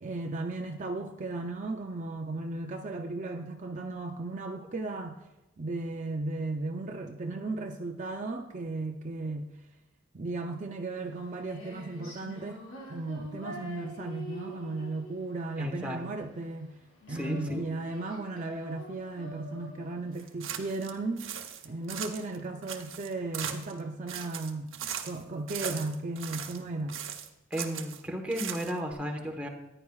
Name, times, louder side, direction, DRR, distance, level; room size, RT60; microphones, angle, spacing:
voice 1, 0.0-5.2 5.6-9.7 10.1-16.8 17.1-21.4 21.6-24.7 25.0-27.0, right 2 dB, 35° right, 3 dB, 0.5 m, -35 dB
Female singing, 10.9-21.9, equal, 80° left, 3.4 m, -46 dB
voice 2, 15.6-16.3 17.1-17.6 27.5-29.5, equal, 5° right, 2 dB, 1.2 m, -34 dB
sound 1, 20.2-20.9 21.2-22.4 22.6-23.8 24.1-25.2 25.5-26.6 26.9-28.0 28.3-28.9, right 9 dB, 65° right, 0.9 m, -38 dB
14.5 x 9.9 x 2.4 m, 1.0 s
head